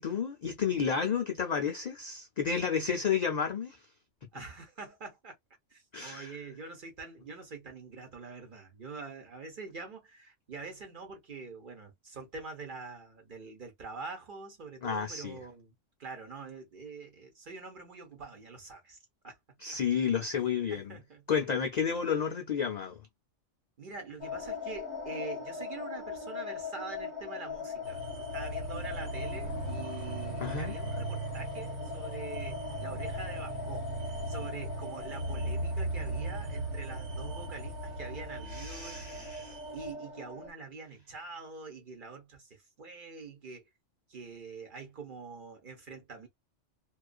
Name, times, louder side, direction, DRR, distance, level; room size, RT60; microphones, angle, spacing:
voice 1, 0.0-3.8 5.9-6.3 14.8-15.4 19.6-20.9 21.3-22.9 30.4-30.7 38.5-39.6, left 7 dB, 60° left, 0.4 m, -31 dB
voice 2, 4.3-5.3 5.7-15.7 16.0-19.0 19.2-19.4 20.7-21.5 23.8-39.3 39.7-43.7 44.1-46.3, right 4 dB, 45° right, 1.0 m, -45 dB
sound 1, 24.2-40.5, left 4 dB, 10° right, 0.9 m, -41 dB
sound 2, 27.8-39.9, right 2 dB, 80° right, 1.3 m, -38 dB
2.4 x 2.3 x 2.3 m
omnidirectional pair, 1.2 m